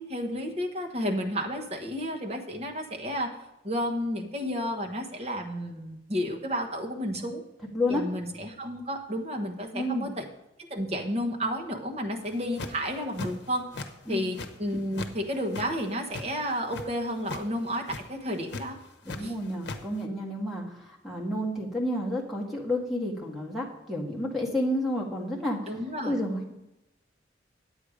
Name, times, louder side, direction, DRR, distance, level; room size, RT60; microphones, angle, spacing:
voice 1, 0.0-3.3 3.6-7.4 7.9-10.3 10.7-13.7 14.1-18.8 19.2-19.3 25.7-26.2, equal, 35° right, 1 dB, 1.3 m, -31 dB
voice 2, 7.7-8.0 9.7-10.1 14.1-14.3 19.0-25.7 26.0-26.5, left 1 dB, ahead, -2 dB, 1.6 m, -30 dB
sound 1, 12.3-12.8 13.1-13.9 14.1-15.1 15.4-16.8 17.2-17.4 17.7-18.0 18.5-19.2 19.4-19.8, left 3 dB, 60° left, 1.0 m, -37 dB
9.6 x 8.7 x 5.0 m, 0.92 s
head